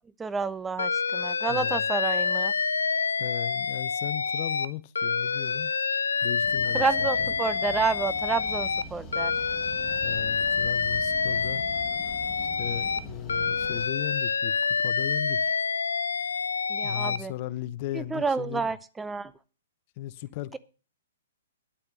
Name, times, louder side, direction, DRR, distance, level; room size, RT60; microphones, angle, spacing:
voice 1, 0.2-2.5 6.7-9.3 16.7-17.3 17.9-19.3, right 4 dB, 10° right, 0.6 m, -29 dB
Alarm, 0.8-4.7 4.9-8.8 9.1-13.0 13.3-17.2, left 5 dB, 85° left, 0.8 m, -27 dB
voice 2, 1.5-1.9 3.2-5.7 6.2-7.3 10.0-11.6 12.3-15.5 16.8-18.7 20.0-20.6, left 14 dB, 40° left, 0.8 m, -37 dB
sound 1, 6.4-13.9, equal, 15° left, 3.4 m, -43 dB
10.0 x 8.7 x 7.4 m
hypercardioid pair, 130°, 0 cm